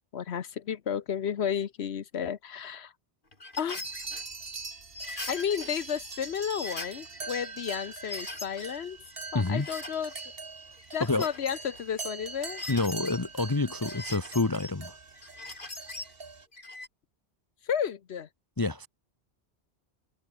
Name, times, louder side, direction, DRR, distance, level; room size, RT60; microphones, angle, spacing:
voice 1, 0.1-2.9 3.6-3.8 5.3-9.0 9.3-10.1 10.9-12.6 17.6-18.3, left 8 dB, 70° left, 1.1 m, -32 dB
sound 1, 3.3-4.2 4.9-5.7 6.1-6.2 6.5-7.3 7.8-8.8 9.1-10.3 10.7-11.8 12.4-13.2 13.8-14.7 15.2-16.1 16.5-16.9, left 2 dB, 45° left, 4.0 m, -41 dB
sound 2, 3.8-16.5, right 4 dB, 55° right, 2.1 m, -43 dB
voice 2, 9.3-9.7 11.0-11.3 12.7-15.0 18.6-18.9, left 3 dB, 20° left, 1.0 m, -28 dB
omnidirectional pair, 1.2 m